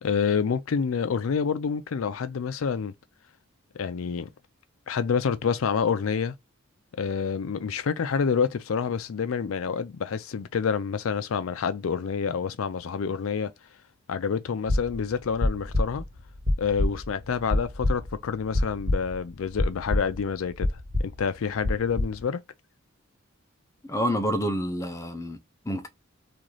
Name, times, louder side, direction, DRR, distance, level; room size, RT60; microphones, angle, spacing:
voice 1, 0.0-2.9 3.7-4.3 4.9-6.3 6.9-13.5 14.1-16.0 16.6-22.4, left 6 dB, 85° left, 0.4 m, -28 dB
sound 1, 14.7-19.3 19.6-20.3 20.6-21.2 21.6-22.2, left 1 dB, 50° right, 1.5 m, -26 dB
voice 2, 23.8-25.4 25.6-25.9, equal, 15° left, 0.5 m, -28 dB
3.1 x 2.5 x 3.8 m
head